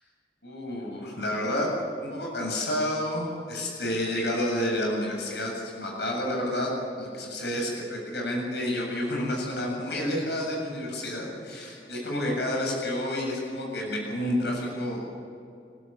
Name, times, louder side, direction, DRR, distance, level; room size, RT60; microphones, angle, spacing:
voice 1, 0.4-1.7 2.0-6.7 7.0-15.0, left 1 dB, 70° left, -1 dB, 7.9 m, -30 dB
30.0 x 13.0 x 8.9 m, 2.6 s
head